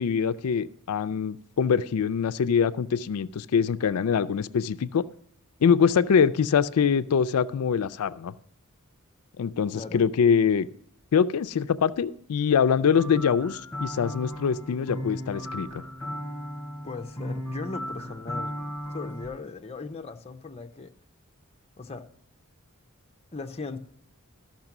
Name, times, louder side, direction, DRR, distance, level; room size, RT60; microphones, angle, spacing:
voice 1, 0.0-5.0 5.6-8.3 9.4-10.7 11.1-15.8, left 6 dB, 90° left, 15 dB, 0.4 m, -24 dB
voice 2, 9.7-10.1 16.8-18.5 18.9-20.9 21.8-22.0 23.3-23.8, left 3 dB, 30° left, 7 dB, 0.6 m, -38 dB
sound 1, 12.9-19.3, equal, 10° left, 3.1 m, -36 dB
13.5 x 5.9 x 5.9 m, 0.67 s
head